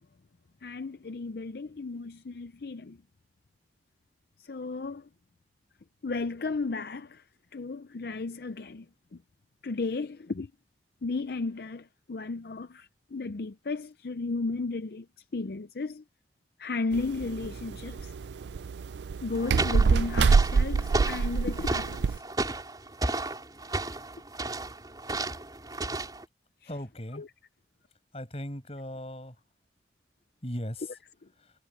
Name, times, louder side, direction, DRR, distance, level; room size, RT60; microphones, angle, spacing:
voice 1, 0.6-3.0 4.5-5.0 6.0-7.2 7.5-8.9 9.1-9.2 9.6-10.5 11.0-15.1 15.3-16.0 16.6-18.1 19.2-22.2, left 3 dB, 60° left, 0.5 m, -34 dB
sound 1, 16.9-22.2, right 5 dB, 75° right, 0.4 m, -26 dB
sound 2, 19.3-26.2, right 2 dB, 20° right, 4.5 m, -33 dB
voice 2, 26.6-27.2 28.1-29.4 30.4-30.9 31.4-31.5, left 1 dB, 35° left, 7.9 m, -38 dB
head